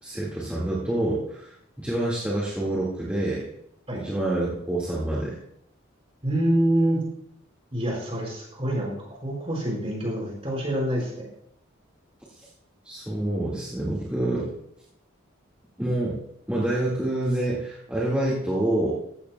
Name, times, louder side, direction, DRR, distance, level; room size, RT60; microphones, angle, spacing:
voice 1, 0.0-3.5 3.9-5.4 12.4-12.5 12.8-14.5 15.8-16.2 16.5-19.0, right 1 dB, 5° right, -8 dB, 1.8 m, -27 dB
voice 2, 6.2-7.0 7.7-8.9 9.2-11.3, right 1 dB, 30° right, -3 dB, 4.9 m, -26 dB
15.5 x 14.5 x 2.3 m, 0.75 s
head